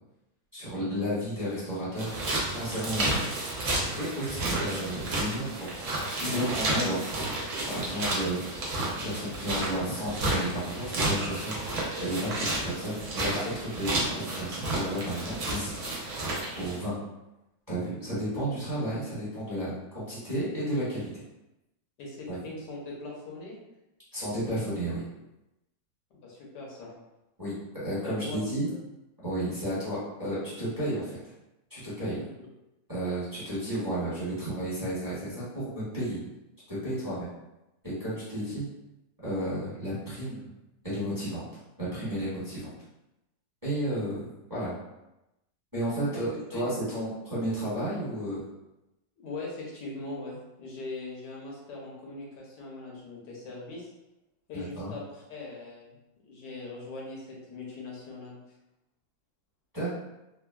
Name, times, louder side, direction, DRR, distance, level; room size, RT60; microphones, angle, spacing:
voice 1, 0.5-2.1 2.5-3.3 4.0-5.7 6.2-7.1 7.7-8.4 9.0-11.6 12.0-16.2 16.5-17.0 17.7-21.1 22.3-22.4 24.1-25.0 27.4-28.7 29.2-31.2 31.7-32.2 32.9-36.3 36.7-37.3 37.8-38.7 39.2-40.5 40.8-41.4 41.8-42.7 43.6-44.7 45.7-48.4 54.5-54.9 59.7-59.9, right 1 dB, 15° right, -11 dB, 1.0 m, -32 dB
sound 1, 2.0-16.8, right 2 dB, 60° right, 0.9 m, -31 dB
voice 2, 22.0-23.6 26.1-26.9 28.0-28.8 32.1-32.2 46.1-46.2 46.5-46.6 49.2-53.9 54.5-55.9 56.2-58.4, left 2 dB, 80° left, -3 dB, 1.4 m, -41 dB
3.4 x 2.1 x 2.2 m, 0.94 s
omnidirectional pair, 1.8 m